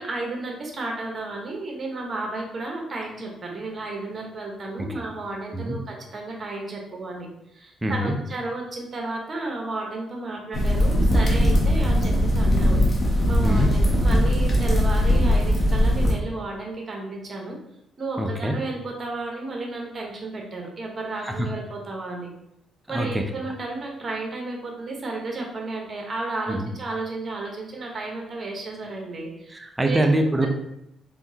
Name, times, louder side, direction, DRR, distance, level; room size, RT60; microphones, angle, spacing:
voice 1, 0.0-7.3 7.5-12.9 13.3-17.6 18.0-22.3 22.9-30.0 30.4-30.5, right 2 dB, 35° right, 0 dB, 0.9 m, -33 dB
voice 2, 7.8-8.1 13.4-13.7 18.2-18.5 21.3-21.5 22.9-23.2 26.5-26.7 29.5-30.5, right 1 dB, 15° right, 4 dB, 0.5 m, -24 dB
sound 1, 10.5-16.1, equal, 35° left, 0.8 m, -20 dB
3.5 x 2.6 x 2.8 m, 0.80 s
cardioid pair, 90°, 0 cm